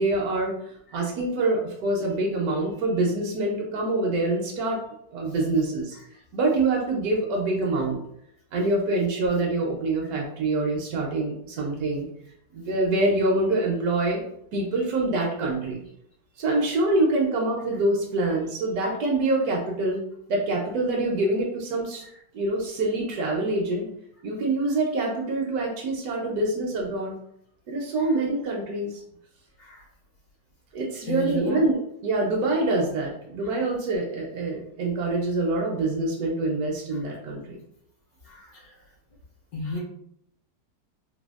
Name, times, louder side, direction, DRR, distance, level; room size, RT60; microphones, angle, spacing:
voice 1, 0.0-4.8 5.1-6.0 6.3-8.0 8.5-12.1 12.5-15.8 16.4-20.0 20.3-22.0 22.3-23.9 24.2-27.2 27.7-29.0 30.7-37.6, right 2 dB, 70° right, -2 dB, 1.0 m, -25 dB
voice 2, 31.1-31.7 38.2-38.6 39.5-39.8, equal, 75° left, -4 dB, 1.3 m, -33 dB
3.3 x 2.2 x 2.3 m, 0.71 s
omnidirectional pair, 1.7 m